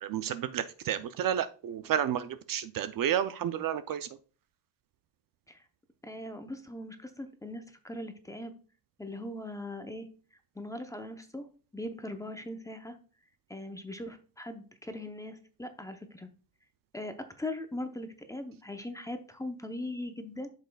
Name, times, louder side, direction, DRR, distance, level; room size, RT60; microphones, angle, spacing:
voice 1, 0.0-4.1, right 10 dB, 50° right, 12 dB, 0.5 m, -31 dB
voice 2, 6.0-8.5 9.0-10.1 10.6-11.5 11.7-13.0 13.5-16.3 16.9-20.5, left 1 dB, 5° left, 7 dB, 0.6 m, -40 dB
8.0 x 6.6 x 2.2 m, 0.38 s
cardioid pair, 130°, 45 cm